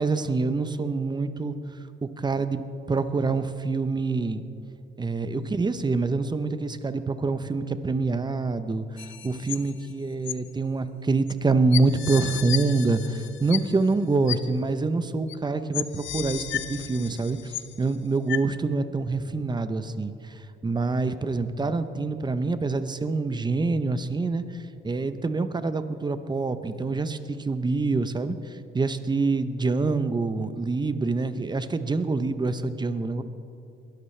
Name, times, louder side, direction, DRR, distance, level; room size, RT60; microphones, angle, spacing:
voice 1, 0.0-1.6 2.0-2.6 2.9-4.4 5.0-24.4 24.8-33.2, right 3 dB, 20° right, 11 dB, 0.8 m, -26 dB
sound 1, 9.0-9.9 10.3-10.4 11.3-11.4 11.7-13.9 14.3-14.4 15.3-15.4 15.7-17.9 18.3-18.4, left 12 dB, 75° left, 0.6 m, -33 dB
22.0 x 12.5 x 3.3 m, 2.6 s
cardioid pair, 90°, 20 cm